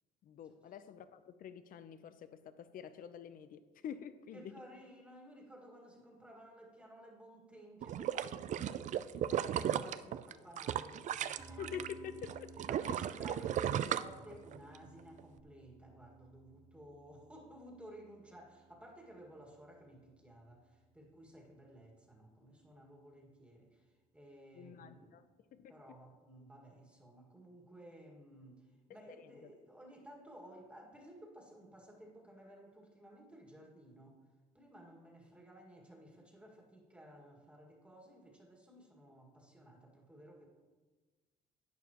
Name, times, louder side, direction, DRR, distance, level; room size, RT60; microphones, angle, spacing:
voice 1, 0.2-4.5 11.6-12.5 12.9-13.0 24.5-25.2 25.5-25.7 28.9-29.5, left 8 dB, 55° left, 12 dB, 0.7 m, -47 dB
voice 2, 4.3-12.1 12.6-25.2 25.7-34.2 34.5-40.5, equal, 5° right, -1 dB, 2.0 m, -56 dB
sound 1, 7.8-11.9 12.2-14.8 15.2-15.3, right 10 dB, 45° right, 0.4 m, -36 dB
sound 2, 11.4-21.8, right 2 dB, 20° right, 1.9 m, -59 dB
11.5 x 9.0 x 3.0 m, 1.3 s
cardioid pair, 110°, 17 cm